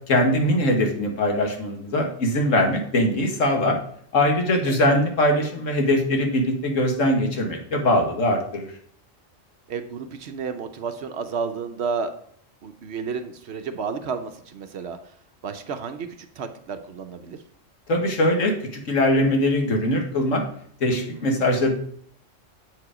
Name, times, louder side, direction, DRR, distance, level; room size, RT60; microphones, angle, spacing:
voice 1, 0.1-3.8 4.1-8.7 17.9-20.4 20.8-21.7, left 1 dB, 75° left, 3 dB, 1.7 m, -21 dB
voice 2, 9.7-12.1 12.6-15.0 15.4-16.1 16.4-17.4 21.2-21.5, right 5 dB, 60° right, 8 dB, 0.8 m, -31 dB
8.0 x 4.7 x 4.9 m, 0.62 s
omnidirectional pair, 1.3 m